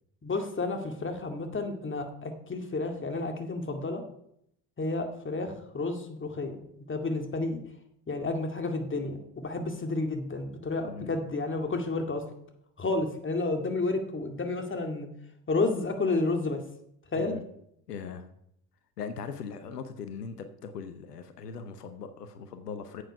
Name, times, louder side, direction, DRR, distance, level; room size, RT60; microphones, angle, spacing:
voice 1, 0.2-4.0 4.8-6.6 6.9-7.6 8.1-12.2 12.8-15.1 15.5-16.6 17.1-17.4, left 3 dB, 25° left, 5 dB, 2.1 m, -31 dB
voice 2, 10.8-11.1 17.1-17.4 17.9-18.3 19.0-23.0, left 6 dB, 90° left, 10 dB, 0.9 m, -40 dB
9.6 x 7.8 x 5.5 m, 0.74 s
hypercardioid pair, 60°, 46 cm